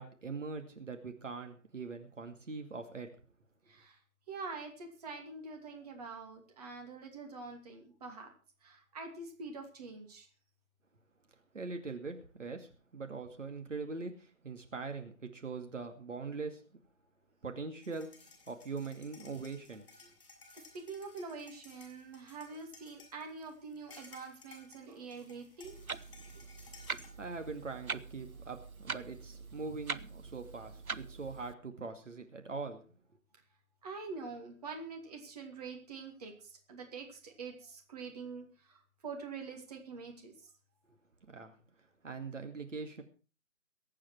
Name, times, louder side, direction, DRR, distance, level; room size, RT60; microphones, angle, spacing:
voice 1, 0.0-3.1 11.5-16.6 17.4-18.1 18.5-19.9 26.9-32.8 41.3-41.5 42.0-43.0, right 4 dB, 60° right, 6 dB, 2.4 m, -42 dB
voice 2, 3.7-4.0 4.3-8.3 8.6-10.3 20.7-25.7 30.9-31.1 33.8-40.5, right 4 dB, 30° right, 2 dB, 2.6 m, -45 dB
sound 1, 17.8-27.1, left 3 dB, 40° left, 7.6 m, -58 dB
Clock, 25.6-31.5, right 5 dB, 80° right, 1.0 m, -43 dB
22.5 x 8.8 x 4.6 m, 0.36 s
figure-of-eight pair, 155°, 42 cm